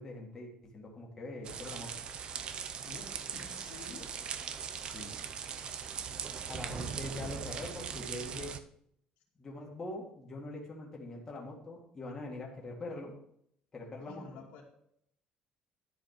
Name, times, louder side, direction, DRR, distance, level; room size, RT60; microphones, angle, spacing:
voice 1, 0.0-1.9 4.9-5.2 6.5-8.6 9.4-13.1 13.7-14.2, left 2 dB, 20° left, -1 dB, 2.1 m, -43 dB
sound 1, 1.4-8.6, right 7 dB, 40° right, 0.6 m, -40 dB
sound 2, 2.3-8.2, equal, 5° right, 1.1 m, -58 dB
voice 2, 2.8-4.1 6.5-7.4 14.1-14.6, left 4 dB, 80° left, -3 dB, 2.4 m, -51 dB
11.0 x 5.1 x 6.7 m, 0.71 s
cardioid pair, 165°, 2 cm